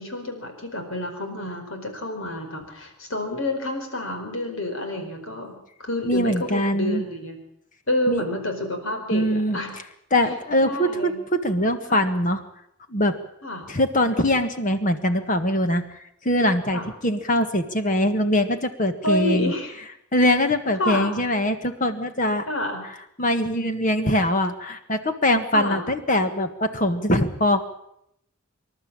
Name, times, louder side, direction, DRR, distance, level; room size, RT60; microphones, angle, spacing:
voice 1, 0.0-7.4 7.9-9.2 9.5-9.7 10.6-11.2 11.9-12.0 13.4-13.6 16.7-16.9 19.0-19.7 20.8-21.2 22.5-22.8 25.5-25.8, left 1 dB, 65° left, 4 dB, 4.6 m, -29 dB
voice 2, 6.1-7.0 8.1-8.3 9.1-9.6 10.1-11.1 11.4-12.4 12.9-13.1 13.7-16.0 16.2-19.5 20.1-22.4 23.2-27.6, left 1 dB, 35° left, 8 dB, 1.6 m, -22 dB
26.0 x 12.0 x 8.8 m, 0.77 s
head